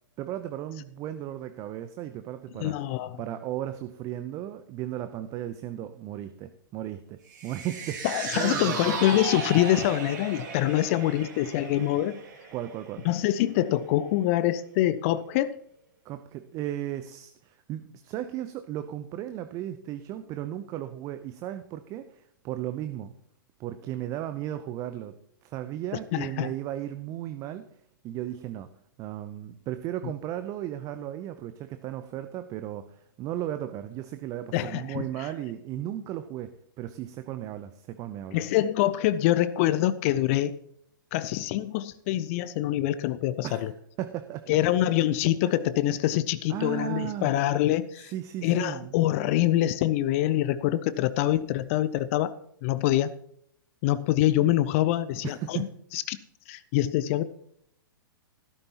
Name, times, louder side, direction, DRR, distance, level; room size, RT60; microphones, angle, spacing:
voice 1, 0.2-2.8 3.2-8.1 8.3-9.0 12.5-13.1 16.0-23.1 23.6-27.7 28.0-28.7 29.0-38.4 43.4-43.7 44.0-44.4 45.4-45.5 46.5-47.3 48.1-48.9 55.2-55.7, right 12 dB, 30° right, 10 dB, 0.7 m, -35 dB
voice 2, 2.5-3.2 8.0-12.2 13.0-15.6 26.1-26.5 34.5-35.3 38.3-40.6 41.1-43.7 44.5-48.1 48.4-52.3 52.6-53.1 53.8-55.6 55.9-56.2 56.5-57.2, left 13 dB, 40° left, 16 dB, 0.6 m, -25 dB
sound 1, 7.3-13.8 14.1-14.2, right 5 dB, 55° right, 2.3 m, -36 dB
14.5 x 12.5 x 2.9 m, 0.70 s
figure-of-eight pair, 110°, 12 cm